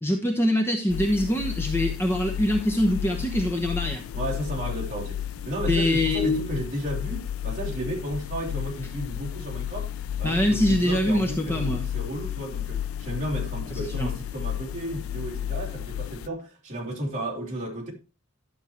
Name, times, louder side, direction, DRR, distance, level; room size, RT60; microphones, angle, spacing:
voice 1, 0.0-4.0 5.7-6.4 10.2-11.9 13.8-14.1, left 1 dB, 10° left, 1.0 m, -24 dB
sound 1, 0.9-16.3, left 10 dB, 75° left, 0.3 m, -32 dB
voice 2, 4.1-9.9 10.2-17.9, right 1 dB, 35° right, 3.0 m, -33 dB
11.5 x 7.1 x 3.0 m
head